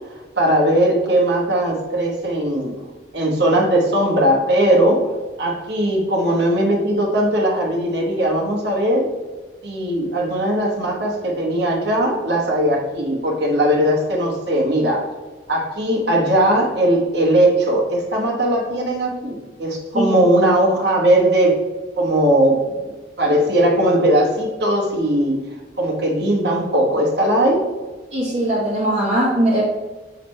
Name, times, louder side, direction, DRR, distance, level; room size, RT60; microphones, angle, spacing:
voice 1, 0.4-2.9 3.1-5.1 5.4-9.1 9.6-15.1 15.5-21.6 22.0-22.8 23.2-25.3 25.8-27.6, right 1 dB, 60° right, -3 dB, 1.1 m, -18 dB
voice 2, 28.1-29.6, right 1 dB, 35° right, -6 dB, 1.1 m, -19 dB
6.2 x 4.9 x 3.2 m, 1.2 s
head